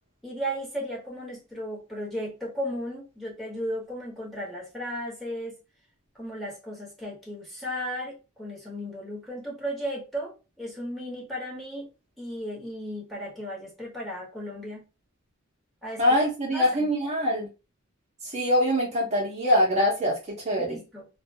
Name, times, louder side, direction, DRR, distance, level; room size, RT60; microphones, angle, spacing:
voice 1, 0.2-5.6 6.1-11.9 12.2-14.8 15.8-16.2 16.5-16.9 20.6-21.1, equal, ahead, 1.0 m, -35 dB
voice 2, 16.0-17.5 18.2-20.8, equal, 30° right, 0.8 m, -24 dB
2.5 x 2.2 x 2.7 m
head